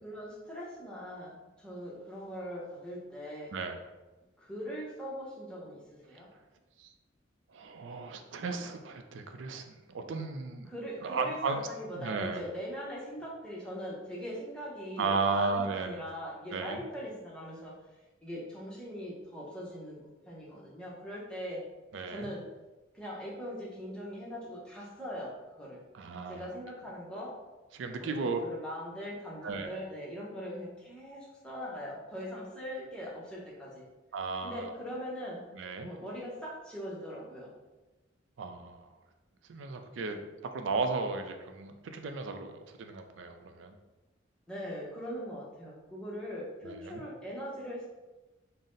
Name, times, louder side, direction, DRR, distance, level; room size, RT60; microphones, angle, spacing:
voice 1, 0.0-3.5 4.4-6.3 10.6-17.7 18.2-21.6 22.1-22.4 22.9-25.8 26.3-27.3 28.0-33.8 34.4-35.5 35.7-37.5 44.5-47.9, equal, 5° left, -5 dB, 0.8 m, -41 dB
voice 2, 7.5-10.7 11.0-11.7 12.0-12.4 15.0-16.0 16.5-16.8 21.9-22.3 25.9-26.5 27.7-28.4 29.4-29.8 34.1-34.8 35.6-35.9 38.4-38.9 39.5-42.5 42.8-43.8 46.6-47.0, right 4 dB, 80° right, 6 dB, 0.4 m, -35 dB
4.0 x 2.0 x 3.8 m, 1.1 s
head